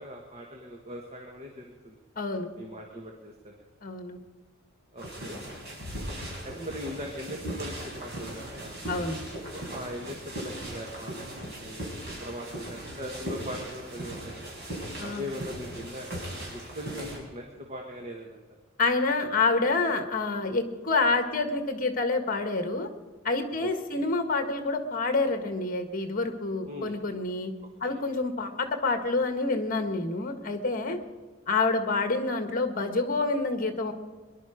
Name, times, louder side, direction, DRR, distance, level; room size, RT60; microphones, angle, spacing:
voice 1, 0.0-2.0 2.5-3.5 4.9-5.4 6.4-8.7 9.5-14.5 15.0-18.4 23.6-24.1 26.6-26.9 27.8-27.9, equal, 30° right, 1 dB, 1.5 m, -40 dB
voice 2, 2.2-2.5 3.8-4.2 8.8-9.2 15.0-15.2 18.8-22.9 23.2-27.5 27.8-31.0 31.5-33.9, left 3 dB, 40° left, 7 dB, 1.6 m, -27 dB
sound 1, 5.0-17.2, right 1 dB, 50° right, 5.5 m, -38 dB
23.5 x 11.5 x 5.0 m, 1.4 s
head